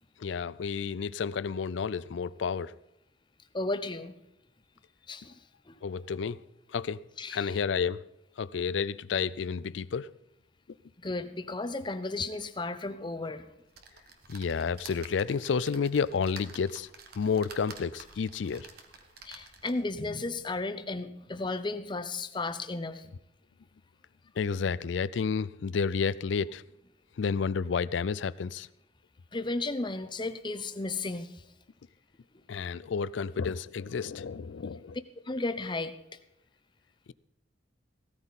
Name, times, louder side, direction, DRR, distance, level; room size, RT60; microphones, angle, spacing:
voice 1, 0.2-2.7 5.8-6.4 6.7-7.0 7.3-8.0 8.4-10.1 14.3-16.9 17.2-18.7 24.4-26.6 27.2-28.7 32.5-35.0, left 6 dB, 80° left, 0.4 m, -30 dB
voice 2, 3.5-4.1 5.1-5.4 5.7-5.8 7.2-7.6 11.0-13.5 19.2-23.1 29.3-31.4 35.2-35.9, left 2 dB, 25° left, 0.7 m, -34 dB
sound 1, 13.7-20.0 20.5-20.6 20.9-21.0, right 4 dB, 55° right, 1.4 m, -50 dB
16.5 x 13.5 x 4.1 m
head